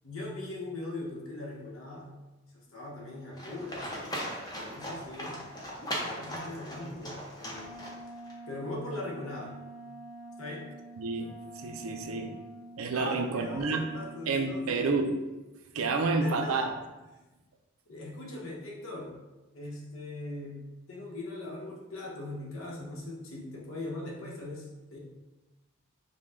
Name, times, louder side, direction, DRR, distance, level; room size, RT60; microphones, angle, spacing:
voice 1, 0.0-2.1 2.5-4.1 4.6-5.4 6.0-7.8 8.5-9.6 10.4-10.7 12.9-14.9 16.2-16.7 17.1-17.2 17.9-19.2 19.5-25.0, left 2 dB, 75° left, -2 dB, 1.0 m, -40 dB
Livestock farm animals working animals, 3.4-8.3, equal, 20° left, 0.7 m, -38 dB
Wind instrument woodwind instrument, 7.5-14.3, right 2 dB, 50° right, 1.1 m, -47 dB
voice 2, 11.0-11.3 11.6-12.3 12.8-13.9 14.3-15.1 15.7-16.7, right 3 dB, 90° right, 4 dB, 0.5 m, -29 dB
5.1 x 2.2 x 3.6 m, 1.1 s
head